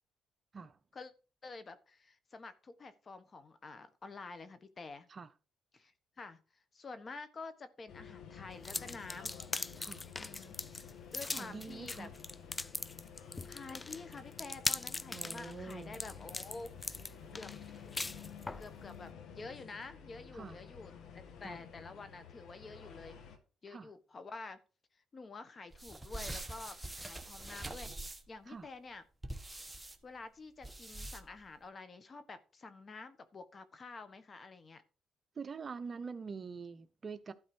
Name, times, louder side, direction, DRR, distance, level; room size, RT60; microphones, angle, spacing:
voice 1, 1.4-5.1 5.7-6.4 6.7-9.4 10.1-10.6 11.1-12.1 13.4-17.5 18.6-23.2 23.6-24.6 25.1-29.0 30.0-34.8, left 3 dB, 40° left, 1.3 m, -49 dB
sound 1, 7.9-23.4, left 7 dB, 80° left, 1.9 m, -52 dB
sound 2, 8.6-18.7, left 2 dB, 20° left, 0.4 m, -40 dB
voice 2, 11.2-12.1 15.1-16.0 20.3-20.6 21.4-21.6 23.7-23.9 28.5-28.7 35.4-37.3, right 5 dB, 40° right, 0.8 m, -45 dB
sound 3, 25.7-28.4 29.2-30.0 30.6-31.4, right 2 dB, 10° right, 1.4 m, -44 dB
12.5 x 4.3 x 6.2 m
cardioid pair, 90°, 0 cm